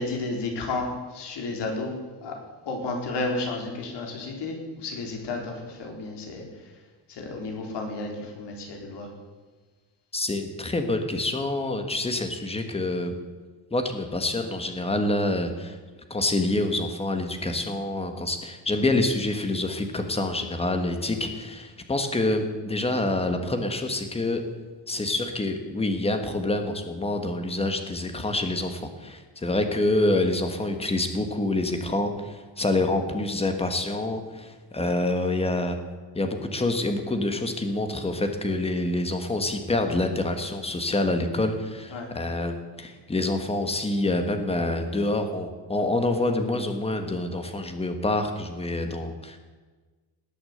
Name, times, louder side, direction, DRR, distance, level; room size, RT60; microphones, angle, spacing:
voice 1, 0.0-1.9 2.2-2.3 2.7-6.4 7.1-9.1 41.9-42.1, left 3 dB, 65° left, 2 dB, 4.1 m, -32 dB
voice 2, 10.1-13.1 13.7-15.8 16.1-24.4 24.9-35.8 36.1-49.4, left 2 dB, 15° left, 6 dB, 1.6 m, -27 dB
19.5 x 8.6 x 8.1 m, 1.3 s
cardioid pair, 170°, 44 cm